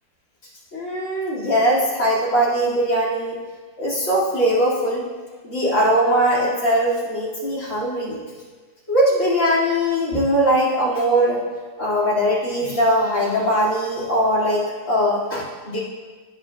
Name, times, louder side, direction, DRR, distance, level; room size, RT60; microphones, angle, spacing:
voice 1, 0.7-3.4 3.8-5.1 5.4-8.2 8.9-11.4 11.8-15.8, equal, 40° left, -6 dB, 2.6 m, -20 dB
17.0 x 5.8 x 2.3 m, 1.4 s
omnidirectional pair, 2.1 m